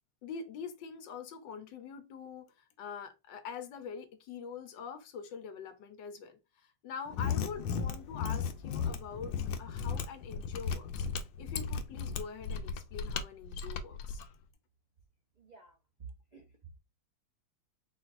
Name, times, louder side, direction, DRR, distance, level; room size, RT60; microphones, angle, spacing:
voice 1, 0.2-14.2, left 6 dB, 70° left, 1.4 m, -44 dB
Mechanisms, 7.1-14.2, left 6 dB, 90° left, 1.5 m, -35 dB
voice 2, 15.4-16.8, right 5 dB, 80° right, 0.3 m, -52 dB
4.6 x 4.2 x 2.5 m
omnidirectional pair, 2.2 m